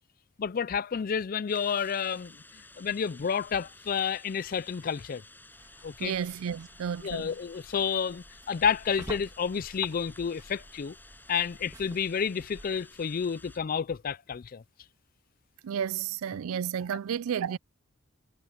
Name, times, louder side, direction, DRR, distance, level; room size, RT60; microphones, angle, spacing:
voice 1, 0.4-5.2 5.8-6.1 7.0-11.0 11.3-14.6, left 7 dB, 40° left, 0.3 m, -30 dB
sound 1, 1.5-13.6, left 2 dB, 10° left, 6.2 m, -54 dB
sound 2, 5.5-12.8, right 1 dB, 15° right, 2.0 m, -49 dB
voice 2, 6.0-7.3 15.6-17.6, right 8 dB, 75° right, 0.4 m, -32 dB
head